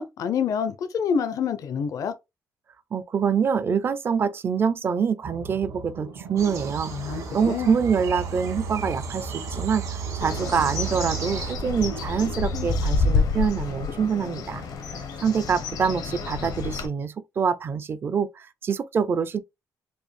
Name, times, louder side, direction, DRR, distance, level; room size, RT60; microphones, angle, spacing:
voice 1, 0.0-2.1 6.9-7.8, left 7 dB, 60° left, 0.5 m, -27 dB
voice 2, 2.9-9.8 10.2-14.7 15.2-19.4, right 6 dB, 35° right, 0.4 m, -25 dB
sound 1, 5.2-12.8, right 4 dB, 80° right, 1.3 m, -36 dB
sound 2, 6.4-11.5, right 5 dB, 60° right, 1.3 m, -36 dB
Bird, 10.2-16.9, left 4 dB, 90° left, 1.0 m, -28 dB
4.3 x 2.6 x 3.2 m
cardioid pair, 155°, 7 cm